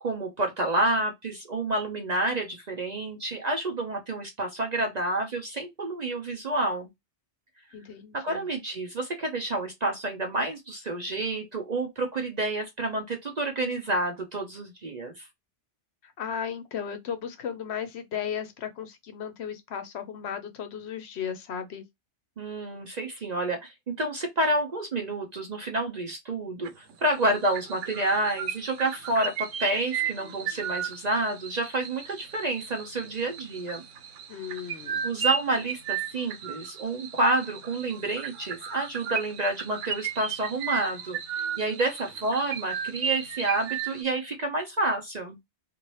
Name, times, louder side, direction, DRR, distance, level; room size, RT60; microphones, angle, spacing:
voice 1, 0.0-6.9 8.1-15.3 22.4-33.8 35.0-41.2 41.6-45.4, right 2 dB, 45° right, 0.6 m, -29 dB
voice 2, 7.7-8.5 16.0-21.8 34.3-35.1, left 8 dB, 65° left, 0.8 m, -35 dB
sound 1, 26.6-26.9 27.2-44.0, right 7 dB, 90° right, 1.0 m, -35 dB
2.8 x 2.5 x 3.1 m
omnidirectional pair, 1.2 m